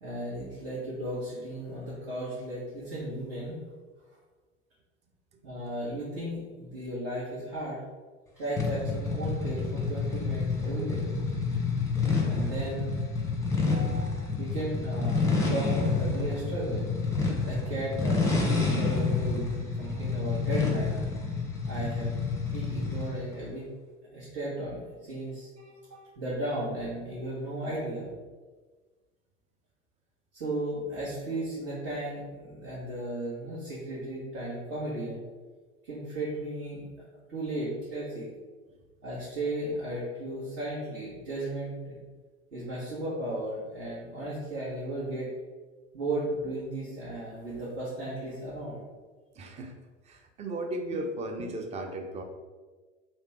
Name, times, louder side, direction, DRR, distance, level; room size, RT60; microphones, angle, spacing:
voice 1, 0.0-3.6 5.4-7.8 8.4-11.1 12.3-12.9 13.6-16.9 17.4-21.0 21.7-22.1 22.5-23.7 24.1-28.1 30.3-35.2 35.8-36.9 37.3-38.3 39.0-42.0 42.5-45.3 45.9-48.8, right 1 dB, 55° right, -10 dB, 1.4 m, -35 dB
sound 1, 8.6-23.2, left 4 dB, 10° left, 0.8 m, -29 dB
voice 2, 49.4-49.7 50.1-52.2, right 1 dB, 20° right, 4 dB, 0.4 m, -36 dB
3.2 x 3.0 x 3.1 m, 1.4 s
figure-of-eight pair, 70°, 37 cm